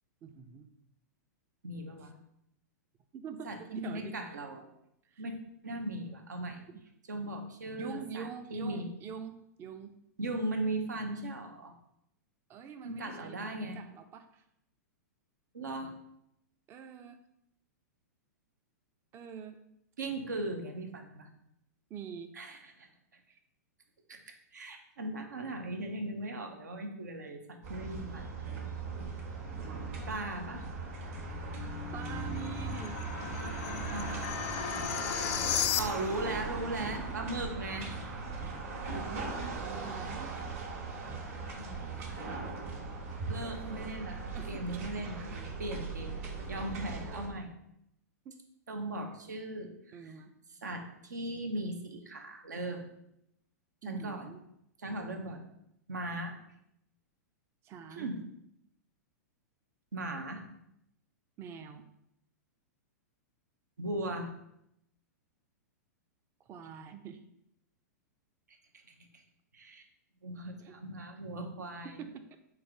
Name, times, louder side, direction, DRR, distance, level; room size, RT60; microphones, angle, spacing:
voice 1, 0.2-0.7 3.1-4.4 5.1-5.2 6.7-6.8 7.8-10.0 12.5-14.4 16.7-17.2 19.1-19.6 21.9-22.3 23.3-23.4 31.9-33.0 33.3-34.8 36.8-37.3 39.1-40.4 43.4-44.0 44.3-44.8 48.3-48.4 49.9-50.3 53.8-54.4 57.6-58.1 61.4-61.9 66.5-67.2 70.6-70.8 71.8-72.2, right 7 dB, 25° right, 8 dB, 0.4 m, -45 dB
voice 2, 1.6-2.1 3.4-4.6 5.2-5.3 5.6-6.6 7.1-8.9 10.2-11.7 12.8-13.8 15.5-16.0 20.0-21.3 22.4-22.9 24.1-28.3 30.1-30.7 33.9-34.1 35.6-37.9 41.6-42.4 43.3-44.2 44.5-45.2 45.6-46.2 46.5-47.5 48.7-50.1 50.6-52.9 53.9-54.3 54.8-55.5 55.9-56.4 58.0-58.2 59.9-60.5 63.8-64.3 69.0-69.2 69.5-69.8 70.2-72.0, right 1 dB, 90° right, 5 dB, 0.7 m, -38 dB
sound 1, 27.6-47.3, right 4 dB, 60° right, 1.4 m, -39 dB
sound 2, 31.1-36.3, left 9 dB, 55° left, 0.4 m, -36 dB
4.7 x 2.5 x 4.4 m, 0.78 s
hypercardioid pair, 120°, 9 cm